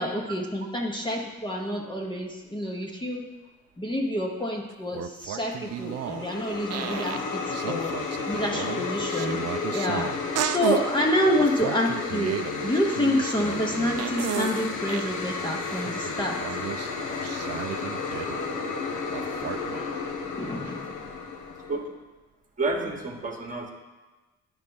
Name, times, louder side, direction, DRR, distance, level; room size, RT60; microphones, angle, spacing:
voice 1, 0.0-3.3 3.8-8.0 8.3-9.4 9.7-10.1 10.4-12.3 12.6-16.4 18.0-18.1 19.8-20.0 20.4-21.1, left 1 dB, 15° left, 0 dB, 0.9 m, -28 dB
sound 1, 4.7-6.3 6.7-7.2 7.5-10.8 11.4-15.1 15.5-18.6 19.1-19.8, right 11 dB, 55° right, 0.4 m, -33 dB
sound 2, 5.5-21.9, left 4 dB, 85° left, 0.9 m, -32 dB
voice 2, 22.6-23.7, right 3 dB, 25° right, 3 dB, 1.2 m, -30 dB
9.7 x 3.4 x 5.3 m, 1.2 s
cardioid pair, 90°, 30 cm